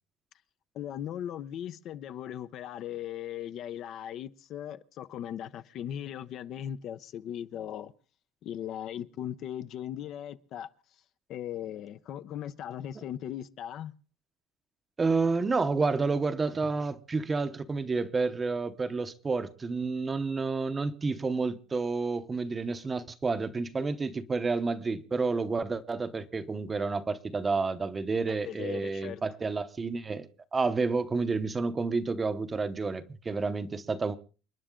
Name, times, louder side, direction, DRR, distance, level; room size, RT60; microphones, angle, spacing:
voice 1, 0.7-7.9 8.4-10.7 11.3-13.9 28.3-29.2, left 10 dB, 45° left, 0.7 m, -38 dB
voice 2, 15.0-34.2, right 4 dB, 15° right, 0.8 m, -30 dB
29.5 x 10.0 x 3.8 m
cardioid pair, 165°, 0 cm